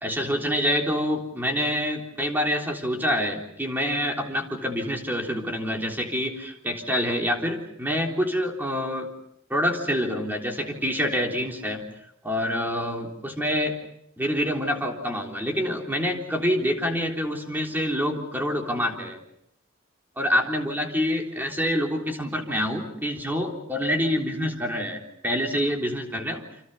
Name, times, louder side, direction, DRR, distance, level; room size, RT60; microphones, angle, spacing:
voice 1, 0.0-9.1 9.5-11.9 12.2-13.8 14.2-19.2 20.2-26.4, equal, 10° right, 1 dB, 3.7 m, -26 dB
29.5 x 26.5 x 5.6 m, 0.76 s
head